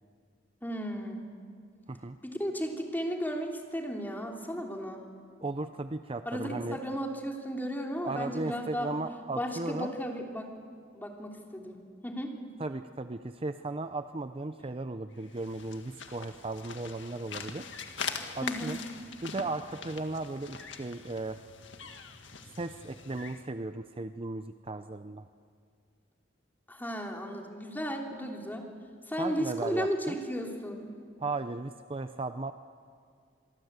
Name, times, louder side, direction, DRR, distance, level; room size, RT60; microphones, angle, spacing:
voice 1, 0.6-1.3 2.2-5.0 6.2-9.0 9.4-10.5 10.9-11.8 12.0-12.3 18.4-18.7 26.7-28.7 29.1-30.9, equal, 10° left, 1 dB, 3.2 m, -34 dB
voice 2, 5.4-6.8 8.0-9.9 12.6-17.7 18.4-18.8 19.2-21.4 22.6-25.3 29.2-30.2 31.2-32.5, right 2 dB, 30° right, 9 dB, 0.6 m, -36 dB
sound 1, 15.2-23.5, left 5 dB, 80° left, 1.9 m, -42 dB
27.0 x 23.0 x 8.1 m, 2.2 s
head